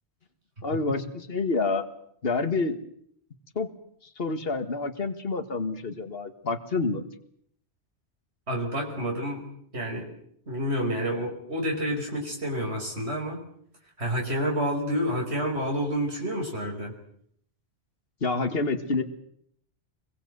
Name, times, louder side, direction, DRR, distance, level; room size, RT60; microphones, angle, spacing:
voice 1, 0.6-1.9 2.2-2.8 3.6-3.7 4.2-7.0 18.2-19.0, left 3 dB, 60° left, 8 dB, 2.0 m, -28 dB
voice 2, 8.5-9.4 9.7-10.1 10.5-13.4 14.0-16.9, equal, 75° right, 0 dB, 5.5 m, -29 dB
26.0 x 22.5 x 8.0 m, 0.68 s
omnidirectional pair, 1.1 m